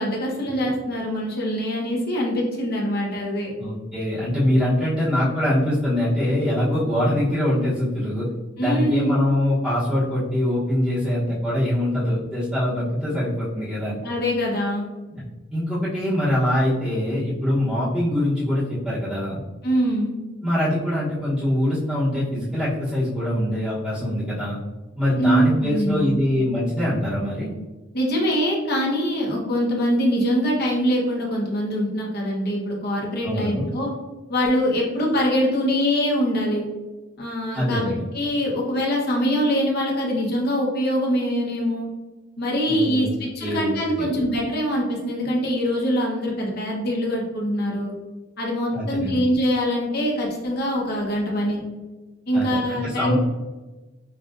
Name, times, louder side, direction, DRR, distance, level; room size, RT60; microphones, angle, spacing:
voice 1, 0.0-3.5 8.6-9.2 14.0-14.9 19.6-20.1 25.2-26.2 27.9-33.9 34.3-36.6 37.2-41.9 42.4-47.9 48.4-51.6 52.3-53.1, equal, 55° left, -2 dB, 1.1 m, -23 dB
voice 2, 3.6-8.3 8.6-14.0 15.1-15.2 15.5-19.4 20.4-24.6 25.0-27.5 33.2-33.7 37.5-38.0 42.7-43.1 43.4-44.1 48.7-49.2 52.3-53.1, left 1 dB, 5° right, -11 dB, 1.0 m, -23 dB
5.6 x 2.4 x 2.6 m, 1.2 s
head